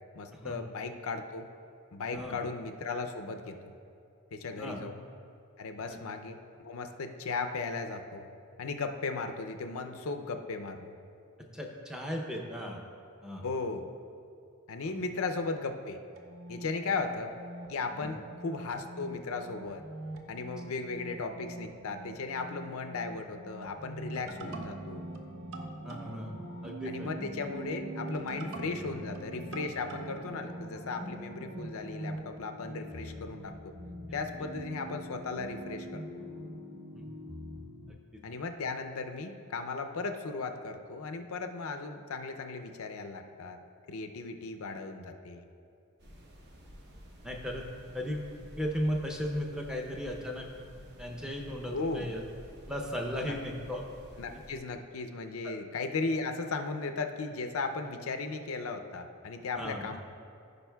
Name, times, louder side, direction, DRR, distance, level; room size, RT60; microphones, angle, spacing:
voice 1, 0.1-1.5 1.9-3.7 4.3-5.0 5.6-8.3 8.6-10.9 13.4-13.9 14.7-16.0 16.5-17.3 17.7-19.8 20.3-25.1 26.8-33.7 34.1-36.2 38.2-43.6 43.9-45.4 51.7-52.1 53.2-53.3 54.2-60.0, left 4 dB, 65° left, 6 dB, 0.5 m, -36 dB
voice 2, 11.5-12.8 13.2-13.5 18.0-18.1 25.8-26.3 26.6-27.1 34.4-34.5 36.9-37.0 47.2-47.7 47.9-50.5 51.0-52.2 52.7-53.8 55.4-55.5 59.6-59.9, equal, 5° right, 0 dB, 0.6 m, -36 dB
sound 1, 16.2-32.3, right 2 dB, 65° right, 0.7 m, -45 dB
sound 2, 24.2-37.9, right 1 dB, 25° right, 1.0 m, -44 dB
sound 3, 46.0-54.6, equal, 50° right, 0.9 m, -51 dB
15.0 x 5.1 x 2.3 m, 2.6 s
head